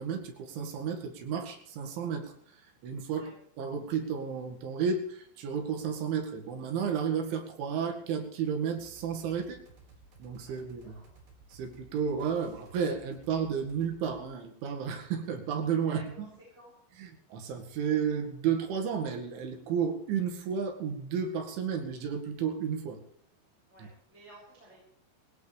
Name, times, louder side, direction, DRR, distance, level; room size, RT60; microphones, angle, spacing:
voice 1, 0.0-2.3 2.8-3.3 3.6-9.6 10.2-11.0 11.5-16.0 17.0-23.0, right 7 dB, 80° right, 3 dB, 4.5 m, -32 dB
sound 1, 8.7-14.2, right 3 dB, 65° right, 7.0 m, -56 dB
voice 2, 15.8-16.7 23.7-24.8, right 1 dB, 15° right, -6 dB, 7.5 m, -53 dB
21.5 x 17.5 x 3.4 m, 0.66 s
omnidirectional pair, 5.3 m